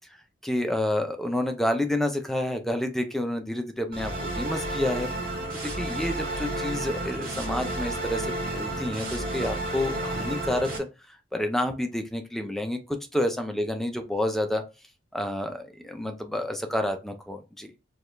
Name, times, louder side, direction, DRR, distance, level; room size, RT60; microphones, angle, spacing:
voice 1, 0.4-5.1 5.7-10.9 11.3-14.6 15.1-17.7, left 1 dB, ahead, 5 dB, 0.5 m, -29 dB
sound 1, 3.9-10.8, right 1 dB, 55° right, 1.8 m, -31 dB
4.8 x 2.4 x 3.2 m, 0.29 s
head